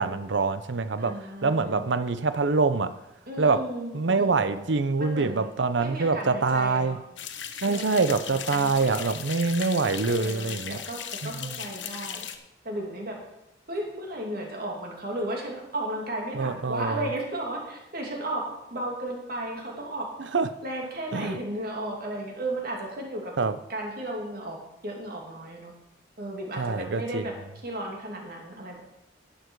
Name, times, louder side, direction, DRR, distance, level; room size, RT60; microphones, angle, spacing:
voice 1, 0.0-2.9 3.4-3.6 3.9-7.0 7.6-10.8 11.2-11.5 16.3-17.1 20.3-20.5 21.1-21.4 23.4-23.6 26.6-27.2, right 4 dB, 75° right, 12 dB, 0.7 m, -25 dB
voice 2, 1.0-1.8 3.3-4.6 5.0-5.5 5.8-7.0 7.6-9.2 10.0-12.3 12.6-13.2 13.7-18.4 18.7-20.1 20.6-23.3 23.7-24.6 24.8-25.7 26.2-27.3 27.6-28.8, right 1 dB, 55° right, 0 dB, 2.7 m, -34 dB
sound 1, 7.2-12.4, left 8 dB, 80° left, 0.9 m, -37 dB
11.0 x 9.2 x 4.7 m, 0.89 s
head